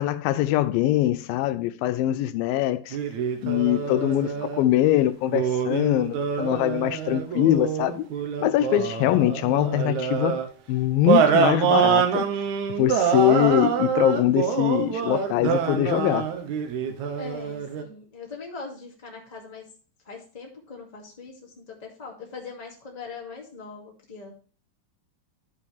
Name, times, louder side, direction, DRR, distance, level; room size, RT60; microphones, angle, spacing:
voice 1, 0.0-3.0 3.4-8.1 8.4-10.4 10.7-12.3 12.8-16.3, left 13 dB, 90° left, 2.4 m, -23 dB
sound 1, 2.9-4.7 5.3-10.5 11.1-17.8, right 7 dB, 70° right, 2.1 m, -25 dB
voice 2, 17.2-19.6 20.0-24.3, left 4 dB, 15° left, 1.6 m, -41 dB
12.5 x 5.4 x 3.3 m
omnidirectional pair, 4.1 m